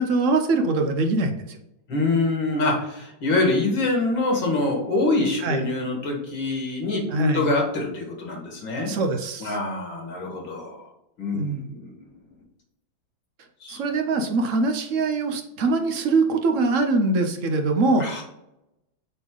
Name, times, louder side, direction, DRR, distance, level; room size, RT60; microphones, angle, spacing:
voice 1, 0.0-1.6 5.4-5.6 7.1-7.5 8.8-9.6 11.3-11.7 13.7-18.1, right 3 dB, 65° right, 6 dB, 0.8 m, -23 dB
voice 2, 1.9-8.9 9.4-10.9 11.2-12.0 13.6-13.8 18.0-18.2, left 2 dB, 75° left, 1 dB, 2.5 m, -25 dB
8.2 x 3.8 x 3.8 m, 0.86 s
omnidirectional pair, 2.2 m